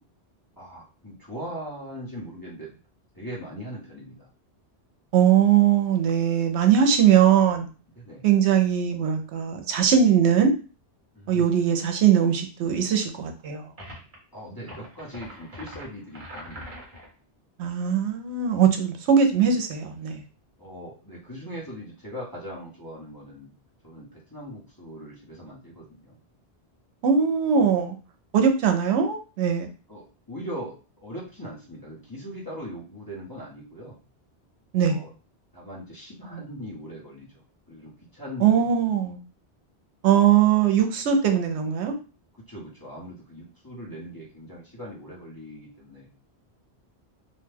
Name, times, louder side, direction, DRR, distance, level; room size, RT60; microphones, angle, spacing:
voice 1, 0.6-2.7 3.1-4.3 8.0-8.3 11.2-11.5 14.3-16.6 20.6-23.5 23.8-26.2 29.9-34.0 34.8-35.1 35.5-37.3 37.7-38.7 42.5-46.1, equal, 20° left, -6 dB, 0.8 m, -40 dB
voice 2, 5.1-7.7 8.2-10.5 11.3-13.6 17.6-20.2 27.0-27.9 28.3-29.7 34.7-35.0 38.4-39.2 40.0-41.9, right 8 dB, 85° right, 5 dB, 0.9 m, -20 dB
sound 1, 13.8-14.2 14.6-17.1, equal, 35° right, 1.0 m, -42 dB
2.5 x 2.2 x 3.2 m, 0.34 s
omnidirectional pair, 1.1 m